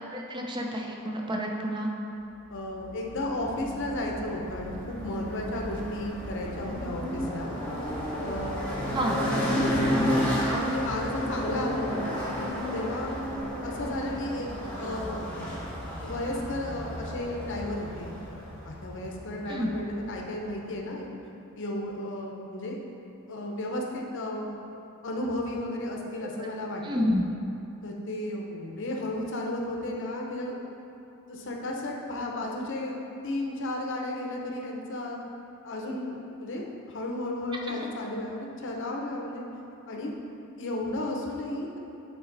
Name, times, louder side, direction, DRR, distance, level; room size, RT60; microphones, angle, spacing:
voice 1, 0.1-1.9 8.9-9.2 19.5-19.7 26.8-27.2 37.7-37.8, equal, 20° right, 0 dB, 0.6 m, -29 dB
voice 2, 2.5-7.5 8.2-8.7 9.3-9.8 10.4-12.2 12.7-13.2 13.6-14.5 14.8-15.2 16.0-18.1 18.6-21.1 21.6-22.8 23.3-24.5 25.0-27.1 27.8-30.6 31.3-35.2 35.6-39.4 39.9-40.1 40.6-41.8, left 1 dB, 60° left, 0 dB, 0.8 m, -33 dB
sound 1, 2.8-20.3, equal, 5° left, 1.1 m, -32 dB
7.9 x 4.0 x 3.9 m, 2.8 s
head